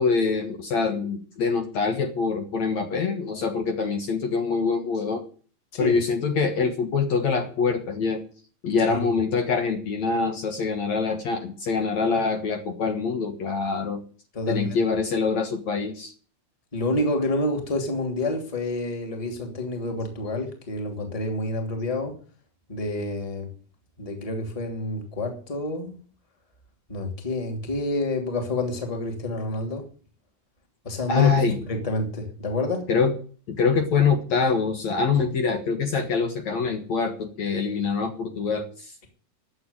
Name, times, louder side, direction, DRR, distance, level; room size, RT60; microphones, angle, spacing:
voice 1, 0.0-5.2 5.8-8.2 8.6-14.0 14.5-16.1 31.1-31.6 32.9-33.2 33.5-38.9, left 5 dB, 55° left, 2.5 m, -24 dB
voice 2, 14.3-14.8 16.7-22.2 22.7-23.5 24.0-25.9 26.9-29.9 30.8-32.8, left 2 dB, 10° left, 2.2 m, -28 dB
12.0 x 7.9 x 9.7 m
omnidirectional pair, 4.2 m